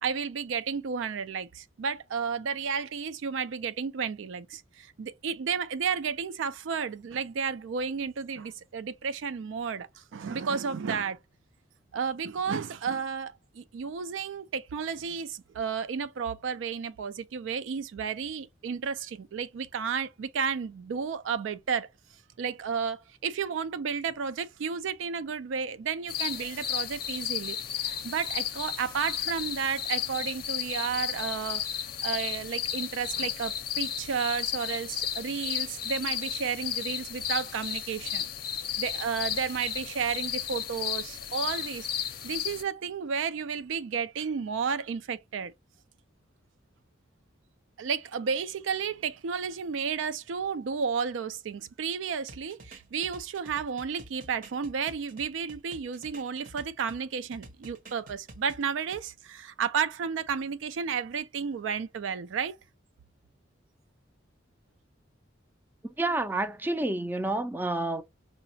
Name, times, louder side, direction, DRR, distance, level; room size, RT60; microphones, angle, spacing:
voice 1, 0.0-11.2 11.9-21.9 22.4-31.7 32.0-38.2 38.8-41.9 42.2-45.5 47.8-62.6, right 6 dB, 80° right, 0.4 m, -32 dB
sound 1, 26.1-42.6, left 9 dB, 50° left, 0.5 m, -33 dB
sound 2, 52.3-57.0 57.3-59.0, right 2 dB, 45° right, 0.7 m, -49 dB
voice 2, 66.0-68.0, right 2 dB, 10° right, 0.3 m, -29 dB
4.8 x 2.1 x 2.6 m
head